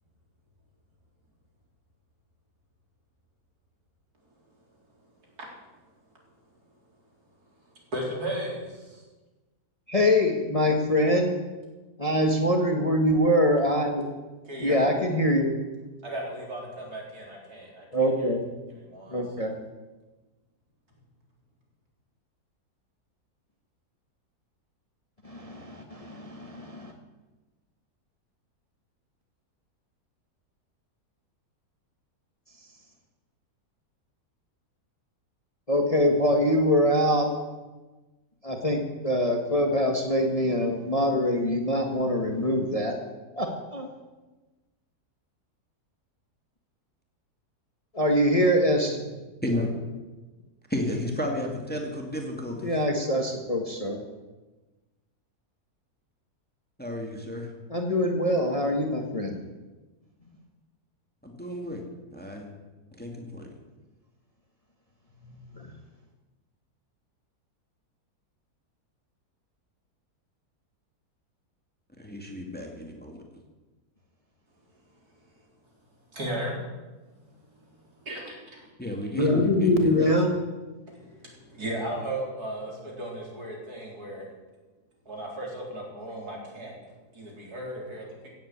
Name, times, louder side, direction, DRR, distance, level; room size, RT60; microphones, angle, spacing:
voice 1, 7.9-8.7 14.5-14.9 16.0-18.3 18.7-19.5 76.1-76.6 78.1-78.6 79.3-79.4 80.9-81.2 81.5-84.2 85.1-86.7 87.1-88.3, right 1 dB, 70° right, -1 dB, 4.4 m, -35 dB
voice 2, 9.9-11.3 12.0-14.1 14.6-15.6 17.9-18.5 19.1-19.5 25.2-26.9 35.7-37.3 38.4-42.9 43.4-43.9 47.9-49.1 52.6-54.0 57.7-59.4 65.6-65.7 79.2-80.3, equal, 25° left, 3 dB, 1.5 m, -24 dB
voice 3, 50.7-52.8 56.8-57.5 61.2-61.9 62.1-62.5 62.9-63.4 72.0-73.2 78.8-80.1, left 1 dB, 5° left, 1 dB, 2.3 m, -32 dB
16.5 x 8.7 x 8.5 m, 1.2 s
omnidirectional pair, 1.7 m